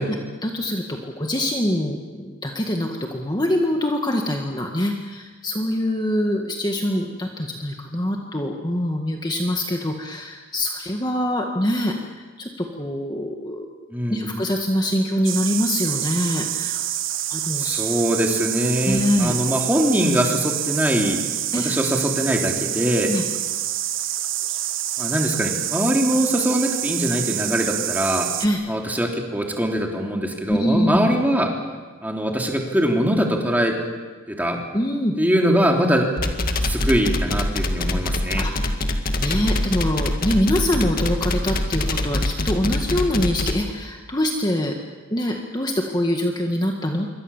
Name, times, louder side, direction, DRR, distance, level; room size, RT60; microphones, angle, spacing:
voice 1, 0.1-12.0 12.4-13.7 14.1-16.9 17.3-17.8 18.8-19.3 21.5-21.7 23.1-23.2 28.4-28.6 30.5-31.0 34.7-35.2 38.4-38.5 39.2-44.8 45.1-47.1, left 1 dB, 20° left, 2 dB, 1.7 m, -24 dB
voice 2, 13.9-14.3 17.6-21.2 21.5-23.1 25.0-28.3 28.7-31.5 32.0-33.7 34.3-34.6 35.2-36.1 36.6-38.5, equal, 10° right, 1 dB, 3.3 m, -22 dB
sound 1, 15.2-28.5, right 12 dB, 75° right, 1.4 m, -27 dB
sound 2, 36.2-43.5, left 1 dB, 45° left, 2.0 m, -23 dB
27.0 x 24.0 x 7.3 m, 1.3 s
head